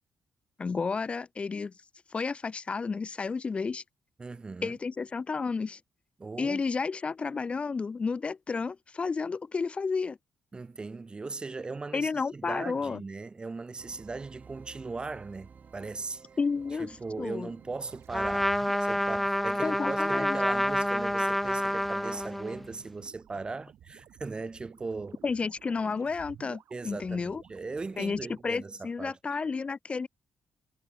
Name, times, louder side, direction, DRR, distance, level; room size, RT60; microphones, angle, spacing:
voice 1, 0.6-1.7 2.1-3.8 4.6-5.8 6.4-10.2 11.9-13.0 16.4-16.9 17.2-17.5 19.6-20.4 25.2-27.4 28.0-30.1, left 4 dB, 25° left, 1.0 m, -31 dB
voice 2, 4.2-4.8 6.2-6.6 10.5-16.2 16.8-18.5 18.8-25.2 26.7-29.2, right 3 dB, 20° right, 1.1 m, -38 dB
sound 1, 13.8-23.1, right 6 dB, 35° right, 5.5 m, -56 dB
sound 2, 16.6-28.4, right 11 dB, 70° right, 7.5 m, -54 dB
Trumpet, 18.1-22.7, equal, ahead, 0.8 m, -28 dB
cardioid pair, 165°, 5 cm